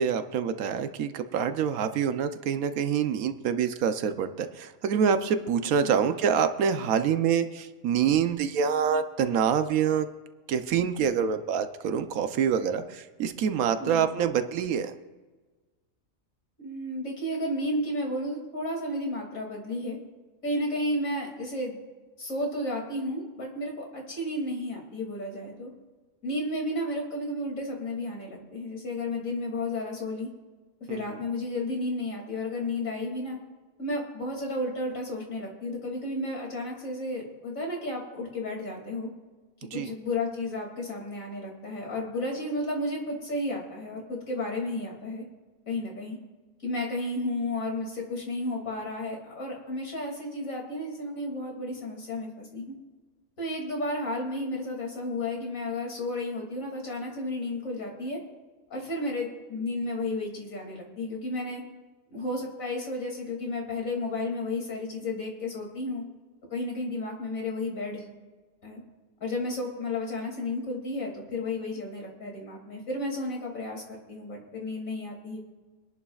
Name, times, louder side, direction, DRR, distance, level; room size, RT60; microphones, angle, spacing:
voice 1, 0.0-10.1 10.5-14.9 30.9-31.2 39.6-39.9, right 7 dB, 85° right, 9 dB, 1.2 m, -26 dB
voice 2, 16.6-20.0 20.4-21.8 22.2-25.7 26.2-30.3 30.9-33.4 33.8-39.1 39.7-45.2 45.7-46.2 46.6-52.8 53.4-58.2 58.7-61.6 62.1-66.0 66.5-68.1 68.6-68.8 69.2-75.4, left 1 dB, 75° left, -1 dB, 3.0 m, -32 dB
24.5 x 11.0 x 2.4 m, 1.3 s
omnidirectional pair, 1.4 m